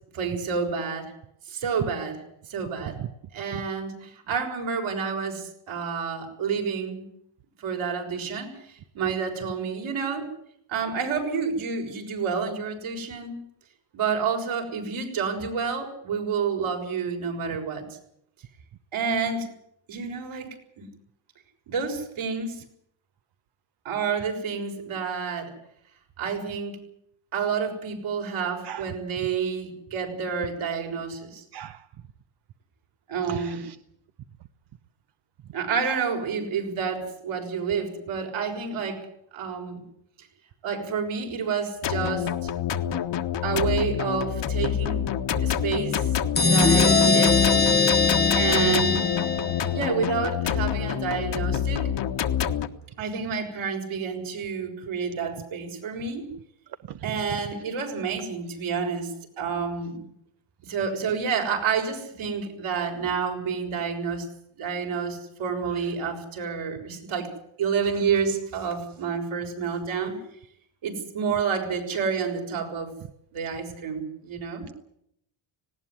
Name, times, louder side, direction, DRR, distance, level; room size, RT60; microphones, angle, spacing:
voice 1, 0.1-1.1 1.5-2.2 2.5-3.0 3.3-7.1 7.6-10.3 10.7-13.4 13.9-17.9 18.9-19.5 19.9-20.5 20.8-20.9 21.7-22.6 23.8-25.5 26.2-26.8 27.3-31.4 33.1-33.6 35.5-39.0 39.3-39.8 40.6-42.5 42.9-43.0 43.4-45.1 45.4-47.4 48.3-49.0 49.7-51.9 53.0-56.3 57.0-59.1 59.4-60.0 60.6-64.3 64.6-67.3 67.6-70.2 70.8-72.9 73.3-74.7, right 6 dB, 70° right, 2 dB, 6.6 m, -29 dB
voice 2, 31.5-31.8 33.3-33.8 35.8-36.0 56.9-57.0, right 11 dB, 55° right, 11 dB, 0.9 m, -37 dB
sound 1, 41.8-52.7, left 9 dB, 60° left, 1.6 m, -27 dB
sound 2, 46.4-49.9, left 4 dB, 20° left, 0.9 m, -21 dB
19.0 x 17.0 x 9.9 m, 0.72 s
cardioid pair, 100°, 49 cm